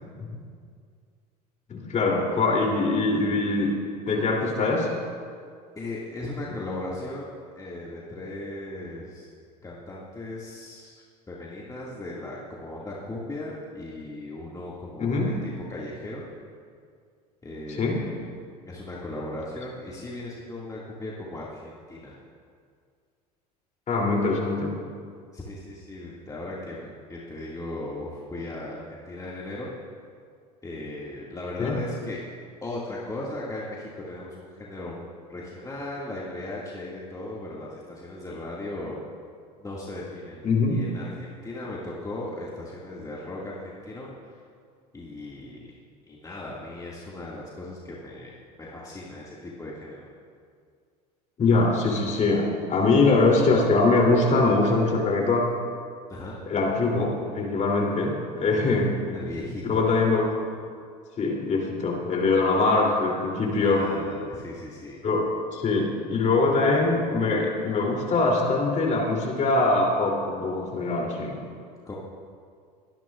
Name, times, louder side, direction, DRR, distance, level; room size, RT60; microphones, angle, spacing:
voice 1, 1.7-3.7 4.0-4.9 15.0-15.3 17.7-18.0 23.9-24.8 31.6-31.8 40.4-40.8 51.4-52.4 52.7-55.5 56.5-59.2 59.6-60.3 61.2-63.9 65.0-71.4, left 3 dB, 35° left, -1 dB, 3.1 m, -23 dB
voice 2, 5.8-9.3 9.6-16.2 17.4-18.2 18.7-22.1 25.3-29.7 30.6-32.2 32.6-39.0 39.6-40.4 40.7-44.4 44.9-45.7 46.1-50.1 56.1-56.4 59.1-59.8 63.6-65.0 71.8-71.9, left 2 dB, 15° left, -5 dB, 2.1 m, -37 dB
22.5 x 10.5 x 2.5 m, 2.1 s
hypercardioid pair, 75°, 21 cm